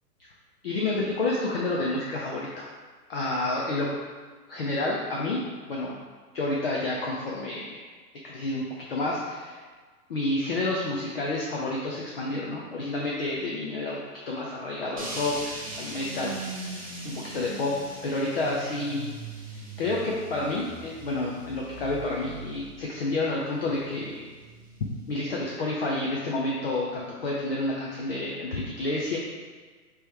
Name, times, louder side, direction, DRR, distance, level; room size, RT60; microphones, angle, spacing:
voice 1, 0.6-2.7 3.1-3.9 4.5-5.4 5.7-6.0 6.3-7.8 8.2-9.6 10.1-14.0 14.3-16.3 17.0-17.7 18.0-19.1 19.8-24.3 25.1-29.2, left 2 dB, 40° left, -4 dB, 0.5 m, -29 dB
sound 1, 15.0-25.2, right 2 dB, 25° right, 0.4 m, -40 dB
3.5 x 3.0 x 4.4 m, 1.5 s
hypercardioid pair, 140°, 47 cm